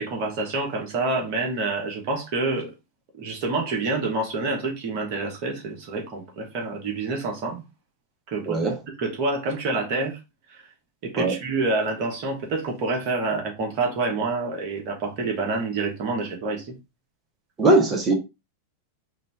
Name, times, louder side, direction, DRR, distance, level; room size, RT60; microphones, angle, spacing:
voice 1, 0.0-2.7 3.1-7.6 8.3-10.2 10.5-10.6 11.0-16.7, right 3 dB, 45° right, 1.5 m, -27 dB
voice 2, 17.6-18.2, right 2 dB, 20° right, 1.2 m, -19 dB
3.9 x 2.7 x 3.5 m
figure-of-eight pair, 90°, 0 cm